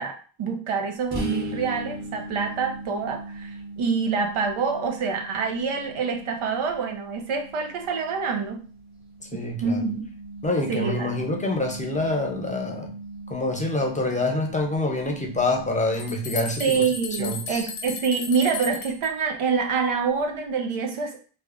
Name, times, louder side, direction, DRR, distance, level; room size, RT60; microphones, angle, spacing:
voice 1, 0.0-8.6 9.3-10.0 10.7-11.1 16.6-21.2, right 5 dB, 85° right, 4 dB, 0.8 m, -26 dB
sound 1, 1.1-18.6, right 1 dB, 35° right, 1.2 m, -40 dB
voice 2, 9.3-9.8 10.4-13.0 13.3-16.8 17.2-17.7, left 2 dB, 15° left, 2 dB, 0.6 m, -26 dB
sound 2, 15.6-15.7 15.9-19.1, left 5 dB, 85° left, 0.8 m, -35 dB
3.3 x 2.1 x 3.6 m, 0.39 s
cardioid pair, 80°, 49 cm